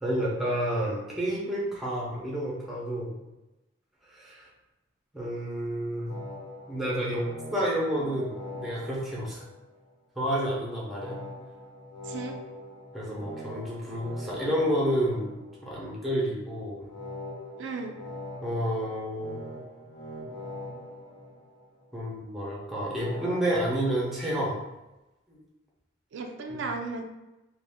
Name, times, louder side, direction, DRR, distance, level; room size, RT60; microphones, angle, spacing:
voice 1, 0.0-3.2 4.1-4.5 5.1-6.1 6.7-7.3 7.5-9.4 10.2-11.2 12.9-16.9 18.4-19.4 21.9-24.6 25.3-25.4 26.5-26.6, equal, ahead, -5 dB, 0.6 m, -30 dB
sound 1, 6.1-9.9 10.9-15.9 16.9-21.9 22.9-23.6, left 1 dB, 65° left, 1.0 m, -42 dB
voice 2, 12.0-12.4 17.6-18.0 26.1-27.0, right 3 dB, 65° right, 4 dB, 0.3 m, -35 dB
2.6 x 2.2 x 3.4 m, 1.0 s
head